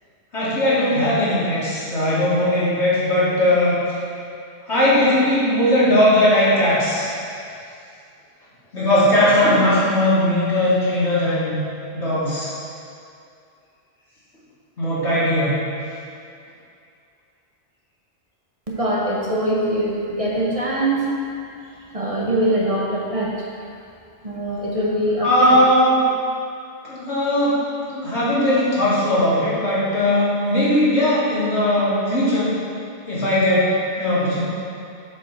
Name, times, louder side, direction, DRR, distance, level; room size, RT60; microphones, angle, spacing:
voice 1, 0.3-3.8 4.7-7.1 8.7-11.6 11.9-12.5 14.8-15.6 25.2-26.0 26.8-27.6 27.9-32.6 33.1-34.4, left 1 dB, 75° left, -10 dB, 2.8 m, -18 dB
voice 2, 18.7-21.1 21.9-23.3 24.2-25.6, right 1 dB, 35° right, -4 dB, 1.0 m, -22 dB
7.8 x 5.3 x 5.9 m, 2.5 s
omnidirectional pair, 1.2 m